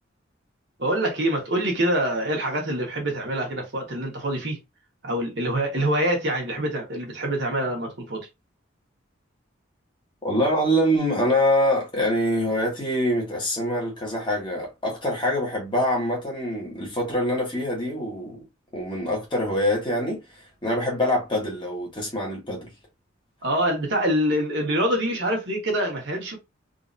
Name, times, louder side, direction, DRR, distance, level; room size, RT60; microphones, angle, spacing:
voice 1, 0.8-4.6 5.0-8.3 23.4-26.3, right 1 dB, 60° right, 1.4 m, -25 dB
voice 2, 10.2-18.4 18.7-22.7, equal, 25° left, 1.4 m, -25 dB
3.8 x 2.8 x 2.6 m
head